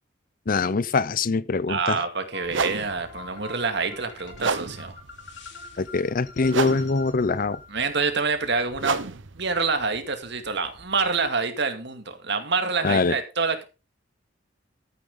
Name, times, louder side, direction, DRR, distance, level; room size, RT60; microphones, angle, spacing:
voice 1, 0.5-2.0 5.8-7.6 12.8-13.2, left 4 dB, 50° left, 0.6 m, -23 dB
voice 2, 1.7-4.9 7.7-9.0 9.4-13.6, right 4 dB, 65° right, 2.2 m, -26 dB
sound 1, 1.7-1.8 2.4-11.3, right 5 dB, 80° right, 0.9 m, -33 dB
sound 2, 2.3-8.4, left 4 dB, 70° left, 3.2 m, -44 dB
13.5 x 9.0 x 3.8 m
head